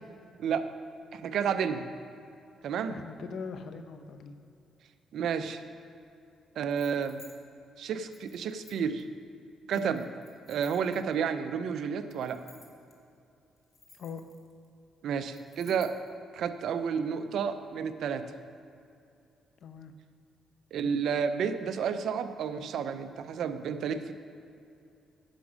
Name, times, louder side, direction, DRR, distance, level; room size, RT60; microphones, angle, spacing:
voice 1, 1.1-1.8 2.6-3.0 5.1-5.6 6.6-7.2 7.8-9.0 9.7-10.1 10.5-12.4 15.0-15.9 16.3-18.2 20.7-24.1, right 7 dB, 70° right, 10 dB, 0.6 m, -31 dB
voice 2, 2.9-4.3 9.7-9.9 13.9-14.2 19.6-19.9, left 5 dB, 65° left, 8 dB, 0.7 m, -41 dB
sound 1, 6.7-7.4 8.1-9.0 9.7-11.3 12.1-12.9 13.6-14.7 15.3-16.1, left 4 dB, 45° left, 1.7 m, -56 dB
10.0 x 6.2 x 6.2 m, 2.6 s
cardioid pair, 90°, 0 cm